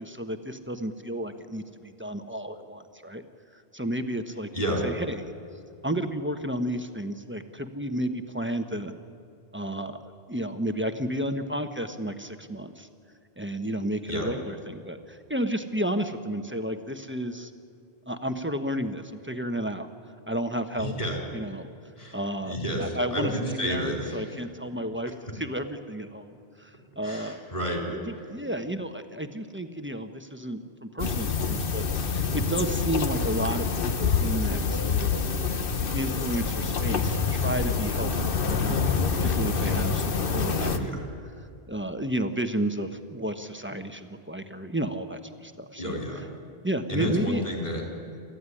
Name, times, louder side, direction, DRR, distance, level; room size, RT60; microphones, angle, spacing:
voice 1, 0.0-3.2 3.7-4.5 4.8-5.3 5.8-8.9 9.5-12.9 13.4-17.5 18.1-19.9 20.3-20.9 21.3-21.7 22.1-26.7 27.0-27.4 27.9-35.1 35.9-41.0 41.7-46.0 46.6-47.4, right 1 dB, 10° right, 7 dB, 1.1 m, -32 dB
voice 2, 4.5-4.9 14.1-14.3 20.8-21.2 22.0-24.3 27.0-27.9 40.6-41.0 45.8-46.2 46.9-47.8, equal, 40° left, 0 dB, 4.5 m, -30 dB
sound 1, 31.0-40.8, left 5 dB, 60° left, 1.2 m, -26 dB
28.0 x 14.5 x 10.0 m, 2.3 s
omnidirectional pair, 1.1 m